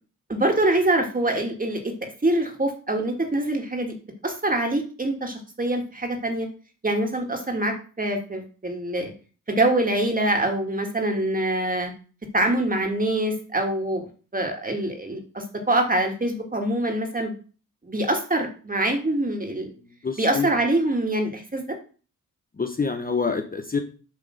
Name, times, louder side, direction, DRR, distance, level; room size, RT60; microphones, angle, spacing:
voice 1, 0.3-3.9 4.2-6.5 6.8-9.1 9.5-11.9 12.3-14.1 14.3-17.3 17.8-19.7 20.2-21.8, right 1 dB, 25° right, 4 dB, 2.0 m, -24 dB
voice 2, 20.0-20.6 22.6-23.8, left 5 dB, 25° left, 6 dB, 0.9 m, -26 dB
7.5 x 3.6 x 6.4 m, 0.38 s
cardioid pair, 70°, 34 cm